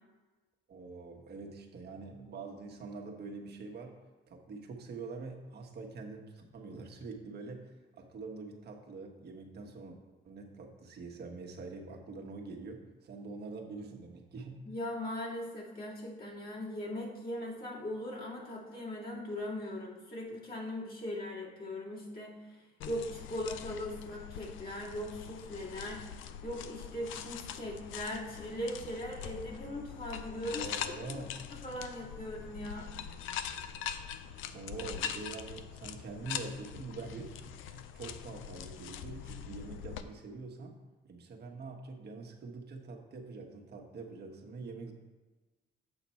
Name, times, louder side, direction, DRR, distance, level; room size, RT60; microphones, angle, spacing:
voice 1, 0.7-4.0 4.3-10.0 10.2-14.6 30.5-31.4 34.5-40.7 41.0-44.9, right 3 dB, 55° right, 1 dB, 1.2 m, -45 dB
voice 2, 14.6-26.0 26.4-30.7 31.1-31.2 31.5-32.9, left 1 dB, 50° left, -5 dB, 2.3 m, -39 dB
sound 1, 22.8-40.0, left 9 dB, 85° left, 0.5 m, -43 dB
8.1 x 5.0 x 4.3 m, 1.2 s
cardioid pair, 90°, 20 cm